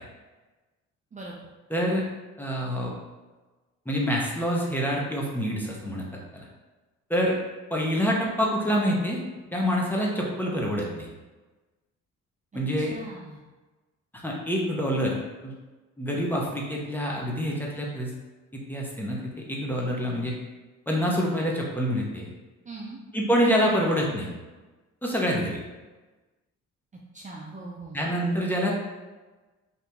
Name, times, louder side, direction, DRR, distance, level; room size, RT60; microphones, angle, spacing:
voice 1, 1.7-2.0 2.4-2.9 3.9-6.0 6.3-6.5 7.1-7.4 7.7-9.2 9.5-11.1 12.5-12.9 14.2-15.5 16.0-18.1 18.5-20.3 20.9-22.3 23.1-24.3 25.0-25.6 27.9-28.7, equal, 5° left, -3 dB, 0.8 m, -26 dB
voice 2, 12.8-13.4 22.7-23.0 27.1-28.0, right 2 dB, 25° right, -3 dB, 0.5 m, -40 dB
2.9 x 2.6 x 3.5 m, 1.2 s
cardioid pair, 90°, 30 cm